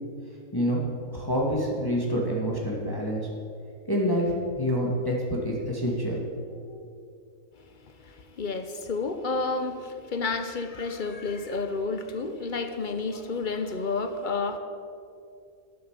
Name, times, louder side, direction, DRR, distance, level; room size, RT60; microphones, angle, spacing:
voice 1, 1.1-3.3 3.9-6.2, equal, 15° left, -3 dB, 1.7 m, -27 dB
voice 2, 8.0-14.6, left 3 dB, 40° left, 8 dB, 0.8 m, -30 dB
12.5 x 7.8 x 7.3 m, 2.5 s
omnidirectional pair, 1.6 m